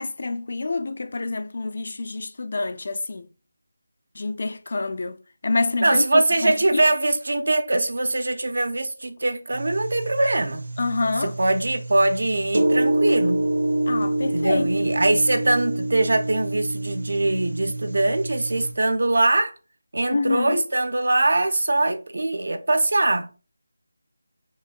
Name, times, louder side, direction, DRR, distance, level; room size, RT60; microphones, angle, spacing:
voice 1, 0.0-3.3 4.2-5.2 5.4-6.8 10.8-11.3 13.9-14.7 20.1-20.6, left 3 dB, 45° left, 0.4 m, -27 dB
voice 2, 5.8-10.6 11.2-13.5 14.3-19.5 19.9-23.3, right 2 dB, 65° right, 0.7 m, -22 dB
sound 1, 9.5-18.7, right 1 dB, 80° right, 1.0 m, -27 dB
5.2 x 3.4 x 2.3 m
figure-of-eight pair, 175°, 0 cm